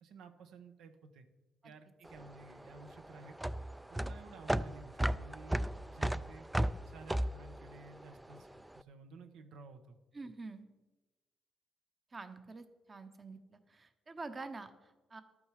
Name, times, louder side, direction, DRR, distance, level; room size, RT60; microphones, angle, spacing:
voice 1, 0.0-1.3 1.6-3.4 3.9-6.5 6.8-8.5 8.7-10.0, right 4 dB, 90° right, 7 dB, 1.1 m, -53 dB
sound 1, 2.1-8.6, right 1 dB, 5° right, 0.3 m, -35 dB
voice 2, 10.1-10.7 12.1-15.2, right 3 dB, 30° right, 9 dB, 0.8 m, -47 dB
12.0 x 8.8 x 4.9 m, 1.2 s
cardioid pair, 115°, 0 cm